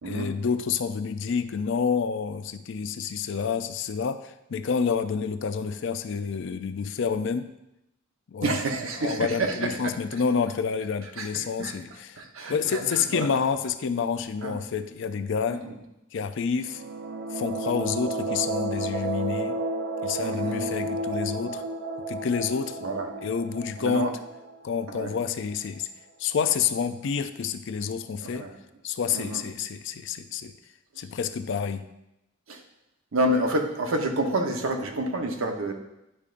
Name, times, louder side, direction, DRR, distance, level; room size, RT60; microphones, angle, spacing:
voice 1, 0.0-7.5 8.3-8.6 9.0-12.2 12.5-15.7 16.1-16.8 17.3-19.6 20.0-21.6 22.1-22.8 23.2-24.2 24.6-25.9 26.2-28.5 28.8-30.5 31.0-31.9, left 6 dB, 65° left, 10 dB, 0.4 m, -28 dB
voice 2, 8.4-9.9 11.2-11.7 12.2-12.8 13.1-13.3 14.4-14.6 15.5-15.7 20.2-20.7 22.8-23.1 23.8-24.1 24.9-25.1 28.2-28.5 29.1-29.4 32.5-32.6 33.1-35.7, right 1 dB, 85° right, 3 dB, 0.9 m, -28 dB
guitar pad a minor chord, 16.6-25.2, right 2 dB, 55° right, 0.5 m, -32 dB
9.8 x 5.1 x 2.5 m, 0.89 s
head